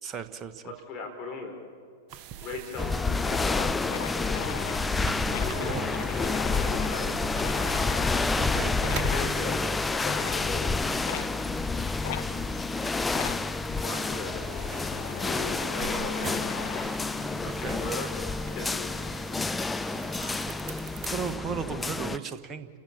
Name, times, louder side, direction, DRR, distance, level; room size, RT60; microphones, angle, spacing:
voice 1, 0.0-0.6 5.7-5.8 8.4-8.8 17.4-17.8 20.7-22.7, right 6 dB, 25° right, 9 dB, 1.4 m, -36 dB
voice 2, 0.6-1.7 2.4-3.6 4.1-4.4 5.4-6.0 6.6-7.2 9.1-9.7 10.2-10.8 13.8-14.6 14.9-16.4 17.4-18.2 18.5-19.0, left 3 dB, 35° left, 3 dB, 3.9 m, -38 dB
sound 1, 2.1-21.4, right 10 dB, 40° right, 1.0 m, -44 dB
sound 2, 2.8-22.2, left 3 dB, 10° left, 0.5 m, -29 dB
sound 3, 2.9-3.0 3.2-3.3 3.5-8.3 8.8-9.3 10.0-10.5 11.1-11.3 12.0-12.3 13.1-13.4 14.2-17.0, left 11 dB, 55° left, 1.2 m, -38 dB
30.0 x 15.0 x 7.3 m, 2.2 s
figure-of-eight pair, 100°, 0 cm